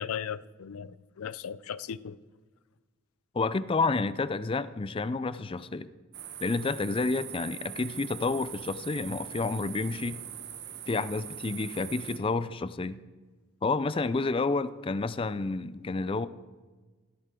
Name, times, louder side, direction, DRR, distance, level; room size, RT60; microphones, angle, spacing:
voice 1, 0.0-2.2, left 8 dB, 85° left, 0.5 m, -37 dB
voice 2, 3.3-5.9 6.4-10.2 10.9-13.0 13.6-16.3, left 3 dB, 25° left, 0.4 m, -30 dB
sound 1, 6.1-12.2, right 10 dB, 50° right, 1.0 m, -42 dB
16.5 x 13.0 x 3.7 m
head